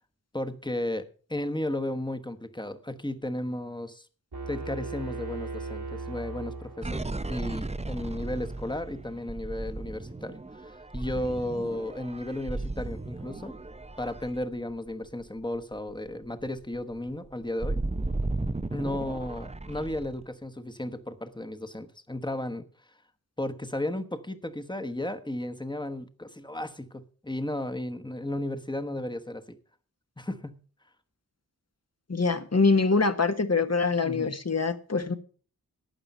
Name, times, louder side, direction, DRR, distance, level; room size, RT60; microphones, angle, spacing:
voice 1, 0.3-4.0 4.5-13.5 14.0-17.8 18.7-22.7 23.4-29.6 30.2-30.6 34.0-34.3, left 1 dB, 10° left, 1.2 m, -34 dB
sound 1, 4.3-7.3, right 3 dB, 80° right, 2.2 m, -37 dB
sound 2, 6.8-15.2 15.6-15.8 16.1-20.2, right 2 dB, 20° right, 0.6 m, -35 dB
voice 2, 32.1-35.1, left 4 dB, 45° left, 1.2 m, -24 dB
12.0 x 8.8 x 5.4 m
wide cardioid pair, 55°, 37 cm